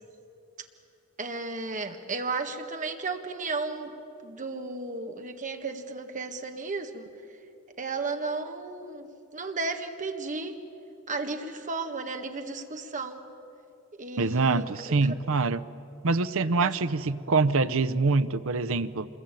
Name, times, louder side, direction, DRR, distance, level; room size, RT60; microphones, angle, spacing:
voice 1, 1.2-3.9 4.2-7.1 7.8-10.6 11.1-13.2 14.0-14.7 16.6-16.7, right 3 dB, 35° right, 5 dB, 1.7 m, -34 dB
voice 2, 14.2-15.6 16.0-19.1, right 3 dB, 70° right, 12 dB, 0.8 m, -25 dB
26.0 x 22.0 x 9.1 m, 2.8 s
head